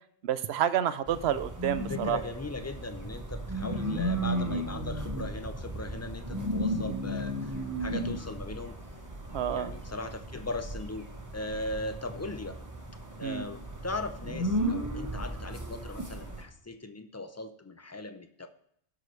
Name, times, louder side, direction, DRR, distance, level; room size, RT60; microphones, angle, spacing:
voice 1, 0.2-2.2 9.3-9.7 13.2-13.5, right 10 dB, 75° right, 14 dB, 0.8 m, -29 dB
sound 1, 1.1-16.4, right 1 dB, 15° right, 1.1 m, -35 dB
voice 2, 1.9-7.5 7.8-8.7 9.5-11.1 11.3-12.6 13.2-18.5, left 2 dB, 25° left, 8 dB, 0.3 m, -38 dB
17.5 x 6.1 x 3.2 m, 0.71 s
omnidirectional pair, 1.1 m